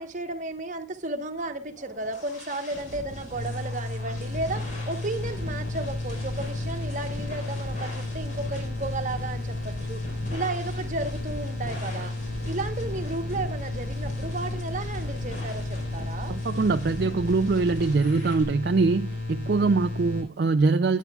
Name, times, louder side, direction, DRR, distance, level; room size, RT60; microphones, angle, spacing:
voice 1, 0.0-10.0 10.3-12.1 12.4-16.3 19.6-19.8, right 2 dB, 40° right, 1.1 m, -33 dB
sound 1, 1.5-18.4, equal, 40° left, 4.6 m, -39 dB
sound 2, 3.3-20.2, left 2 dB, 80° left, 6.7 m, -33 dB
voice 2, 16.3-21.0, right 4 dB, 55° right, 0.4 m, -23 dB
18.0 x 9.4 x 2.3 m
head